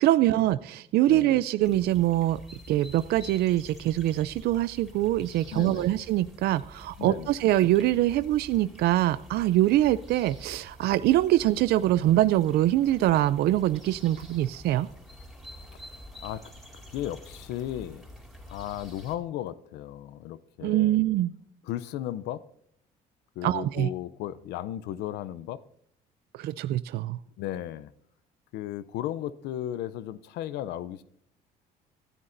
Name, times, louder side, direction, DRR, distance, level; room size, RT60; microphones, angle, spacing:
voice 1, 0.0-2.4 2.7-14.9 20.6-21.3 23.4-23.9 26.3-27.2, right 14 dB, 70° right, 0.4 m, -24 dB
sound 1, 1.6-19.2, left 1 dB, ahead, 4.0 m, -48 dB
voice 2, 5.5-5.9 7.0-7.3 15.9-16.5 16.9-18.1 18.5-21.0 21.6-22.4 23.4-25.6 27.4-27.9 28.5-31.0, left 12 dB, 85° left, 0.5 m, -35 dB
25.5 x 9.8 x 2.6 m
cardioid pair, 110°, 17 cm